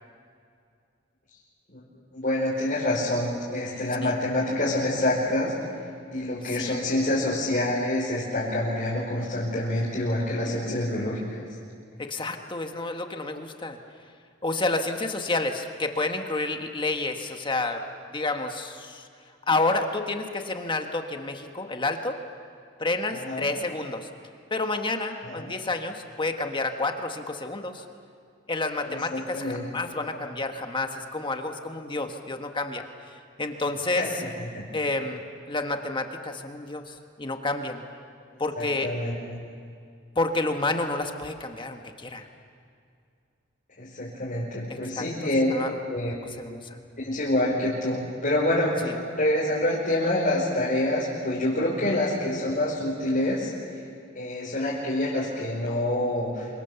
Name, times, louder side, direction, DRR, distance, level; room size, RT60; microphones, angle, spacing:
voice 1, 2.1-5.5 5.8-11.5 23.1-23.5 25.2-25.5 28.9-29.9 31.9-32.1 33.9-34.6 38.2-38.3 38.6-39.1 43.8-45.5 45.9-46.1 47.0-53.8 54.1-56.6, left 1 dB, 45° left, -6 dB, 4.9 m, -27 dB
voice 2, 12.0-13.8 14.4-17.8 18.1-19.1 19.4-22.2 22.8-24.1 24.5-27.8 28.5-32.9 33.1-34.0 34.7-35.2 35.5-37.8 38.4-38.9 40.1-42.3 44.7-45.0 45.5-46.8 48.8-48.9 51.8-52.0, left 2 dB, 25° left, 5 dB, 1.5 m, -30 dB
27.5 x 25.0 x 7.0 m, 2.4 s
head